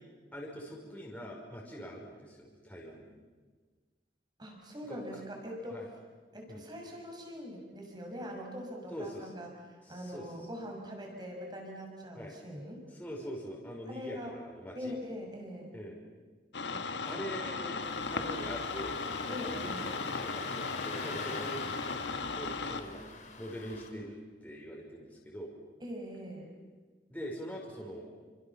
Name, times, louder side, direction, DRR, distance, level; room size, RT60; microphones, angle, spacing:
voice 1, 0.3-3.1 4.8-5.2 5.7-5.8 6.5-6.7 8.9-9.3 9.8-10.5 12.2-12.3 12.9-14.9 15.7-16.0 17.1-17.8 18.1-19.0 19.5-21.6 22.3-25.5 27.1-28.1, equal, 10° left, -3 dB, 5.4 m, -43 dB
voice 2, 4.4-5.8 6.3-12.8 13.9-14.3 14.7-15.7 16.7-17.7 19.3-19.8 25.8-26.5, equal, 25° right, 1 dB, 6.3 m, -43 dB
sound 1, 16.5-22.8, left 4 dB, 80° left, 1.7 m, -36 dB
Engine starting, 17.8-23.9, left 3 dB, 45° left, 3.8 m, -45 dB
29.5 x 25.5 x 7.2 m, 1.4 s
head